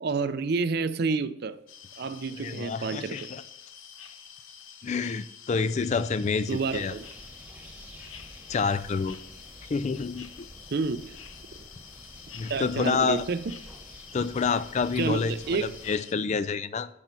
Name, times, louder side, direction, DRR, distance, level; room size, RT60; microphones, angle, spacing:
voice 1, 0.0-1.6 2.0-3.3 6.5-7.1 10.7-11.1 12.5-13.4 15.0-15.8, right 4 dB, 50° right, 0.5 m, -29 dB
sound 1, 1.7-16.1, left 7 dB, 85° left, 0.8 m, -48 dB
voice 2, 2.4-3.4 4.8-7.0 8.5-9.2 9.7-10.5 12.3-13.2 14.1-16.9, left 5 dB, 35° left, 0.3 m, -28 dB
sound 2, 6.5-16.0, right 1 dB, 5° right, 1.2 m, -49 dB
8.7 x 5.7 x 4.0 m
head